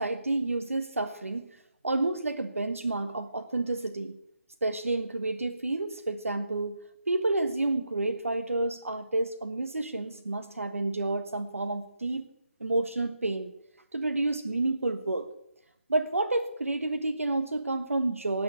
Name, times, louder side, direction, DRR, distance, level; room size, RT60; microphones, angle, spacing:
voice 1, 0.0-4.2 4.6-6.8 7.1-12.2 12.6-13.5 13.9-15.3 15.9-18.4, right 2 dB, 80° right, 7 dB, 1.4 m, -30 dB
18.0 x 6.9 x 9.6 m, 0.77 s
figure-of-eight pair, 140°, 7 cm